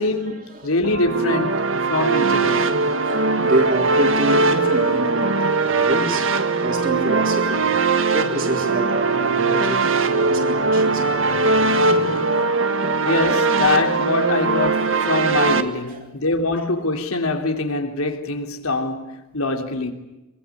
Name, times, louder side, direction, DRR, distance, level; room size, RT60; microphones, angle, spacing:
voice 1, 0.0-2.8 13.0-19.9, left 2 dB, 85° left, 3.4 m, -24 dB
sound 1, 0.8-15.6, right 3 dB, 65° right, 1.7 m, -20 dB
voice 2, 2.4-7.7 8.1-12.2 15.9-16.1, right 1 dB, 40° right, 4.1 m, -28 dB
23.5 x 23.0 x 9.9 m
head